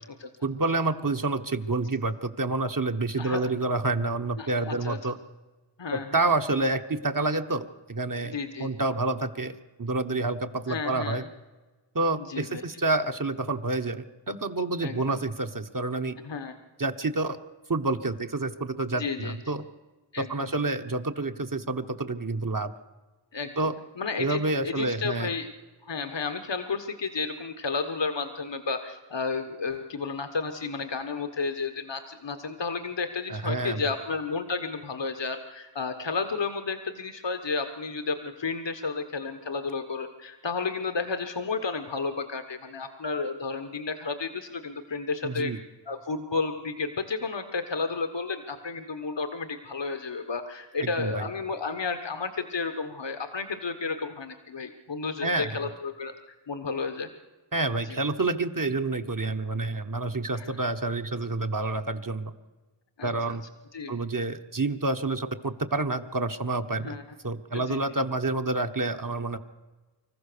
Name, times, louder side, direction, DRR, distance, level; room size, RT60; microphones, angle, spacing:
voice 1, 0.4-5.2 5.9-11.2 11.9-16.2 16.8-17.4 17.7-19.6 20.2-22.7 23.6-23.8 24.2-25.3 33.3-33.8 45.2-45.6 50.8-51.3 55.2-55.5 57.5-62.3 63.0-63.4 63.9-67.0 67.2-69.4, right 2 dB, 45° right, 6 dB, 1.3 m, -28 dB
voice 2, 3.2-3.5 4.4-5.0 5.8-6.2 8.3-8.7 10.7-11.3 12.3-12.6 14.8-15.2 16.2-16.5 19.0-19.4 20.1-20.5 23.3-23.7 24.0-25.5 25.8-45.5 45.9-57.1 57.8-58.0 60.3-60.5 63.0-63.4 63.7-63.9 66.7-67.0 67.5-67.8, left 4 dB, 75° left, 8 dB, 1.3 m, -32 dB
25.5 x 14.5 x 6.8 m, 1.2 s
wide cardioid pair, 55°, 44 cm